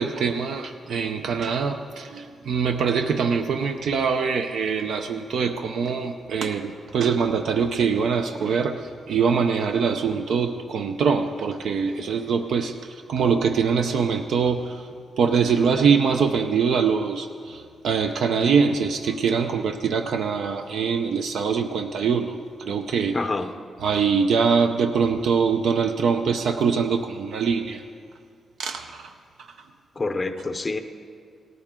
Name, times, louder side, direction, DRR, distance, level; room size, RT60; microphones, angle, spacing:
voice 1, 0.0-14.8 15.2-23.3 23.8-27.8 28.6-29.1 29.4-29.5, right 6 dB, 65° right, 6 dB, 0.6 m, -23 dB
voice 2, 23.1-23.5 30.0-30.8, left 3 dB, 20° left, 8 dB, 0.6 m, -27 dB
18.0 x 13.5 x 3.7 m, 2.2 s
wide cardioid pair, 180°, 0 cm